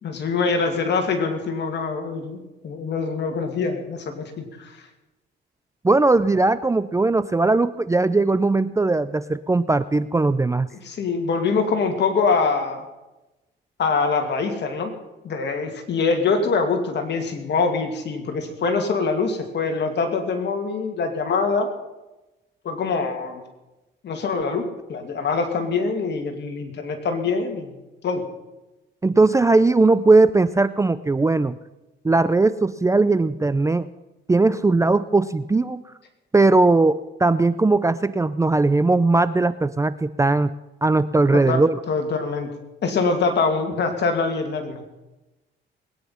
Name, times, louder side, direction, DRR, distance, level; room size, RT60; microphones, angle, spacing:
voice 1, 0.0-4.8 10.8-12.9 13.8-14.9 15.2-21.7 22.6-23.4 24.0-27.7 28.0-28.2 41.4-41.6 41.9-42.5 42.8-45.0, left 4 dB, 60° left, 5 dB, 2.5 m, -24 dB
voice 2, 5.8-10.7 29.0-31.6 32.0-33.9 34.3-35.8 36.3-40.5 40.8-41.8, right 3 dB, 15° right, 15 dB, 0.5 m, -19 dB
21.0 x 9.6 x 5.7 m, 1.0 s
cardioid pair, 90°, 20 cm